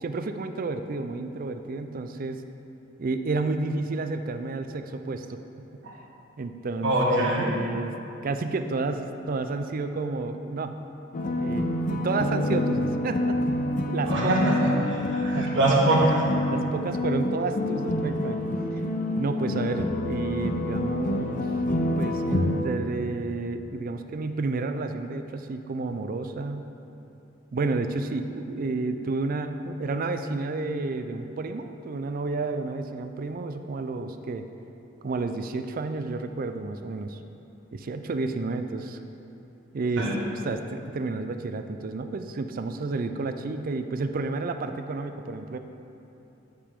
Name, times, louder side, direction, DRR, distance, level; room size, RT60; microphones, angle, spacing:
voice 1, 0.0-2.4 3.0-5.4 6.4-7.9 8.2-10.9 11.4-13.4 13.9-14.3 15.3-16.1 16.5-18.4 19.2-21.4 22.0-26.7 27.5-34.4 35.0-37.2 37.7-39.0 39.7-45.6, right 3 dB, 45° right, 8 dB, 0.4 m, -31 dB
voice 2, 6.8-7.5 14.0-16.0 40.0-40.1, right 1 dB, 65° right, -5 dB, 1.5 m, -24 dB
sound 1, 11.1-22.6, left 1 dB, 40° left, 0.5 m, -27 dB
13.5 x 5.1 x 3.6 m, 2.9 s
head